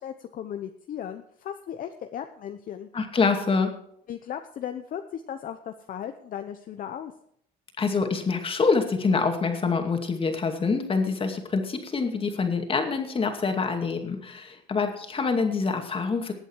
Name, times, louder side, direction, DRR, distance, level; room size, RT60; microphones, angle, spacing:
voice 1, 0.0-2.9 4.1-7.1, left 9 dB, 55° left, 7 dB, 0.9 m, -36 dB
voice 2, 2.9-3.7 7.8-16.3, left 4 dB, 35° left, 5 dB, 2.3 m, -26 dB
19.0 x 8.0 x 4.7 m, 0.70 s
cardioid pair, 110°, 17 cm